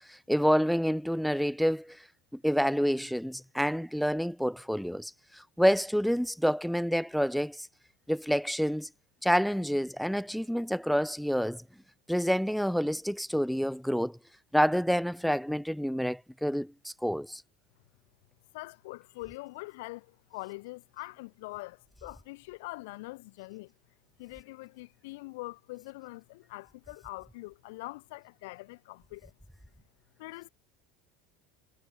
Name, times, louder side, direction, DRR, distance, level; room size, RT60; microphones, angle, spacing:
voice 1, 0.1-2.0 2.4-7.7 8.1-8.9 9.2-11.6 12.1-14.2 14.5-17.4, equal, ahead, 0.8 m, -28 dB
voice 2, 18.5-23.7 24.2-29.3 30.2-30.5, left 23 dB, 80° left, 5.5 m, -43 dB
supercardioid pair, 135°, 0 cm